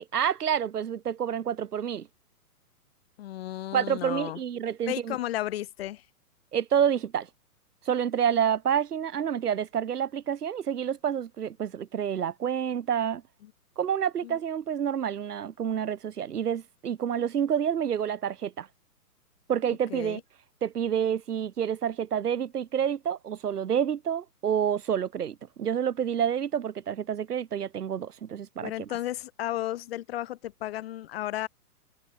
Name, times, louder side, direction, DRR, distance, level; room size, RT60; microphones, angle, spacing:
voice 1, 0.0-2.1 3.7-5.2 6.5-7.3 7.9-13.2 13.8-18.7 19.5-20.2 20.6-28.9, right 8 dB, 75° right, 1.8 m, -28 dB
voice 2, 3.2-4.4 4.9-6.0 13.4-13.5 14.2-14.4 19.9-20.2 28.6-31.5, left 14 dB, 40° left, 2.1 m, -33 dB
hypercardioid pair, 150°, 46 cm